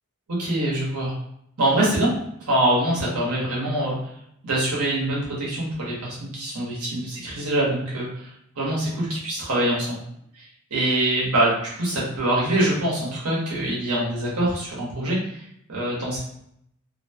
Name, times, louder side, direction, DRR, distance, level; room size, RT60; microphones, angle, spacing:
voice 1, 0.3-1.1 1.6-2.1 2.4-4.0 4.4-10.0 10.3-10.4 10.7-16.2, right 1 dB, 85° right, -5 dB, 1.1 m, -24 dB
2.9 x 2.1 x 2.8 m, 0.74 s
head